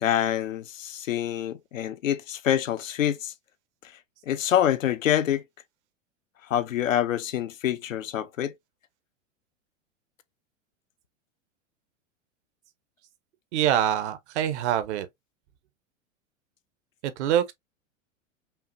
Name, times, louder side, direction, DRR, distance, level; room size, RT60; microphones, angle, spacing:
voice 1, 0.0-3.3 4.3-5.4 6.5-8.5, left 11 dB, 85° left, 0.7 m, -26 dB
voice 2, 13.5-15.1 17.0-17.5, right 10 dB, 60° right, 0.9 m, -25 dB
5.6 x 2.4 x 2.6 m
hypercardioid pair, 105°, 38 cm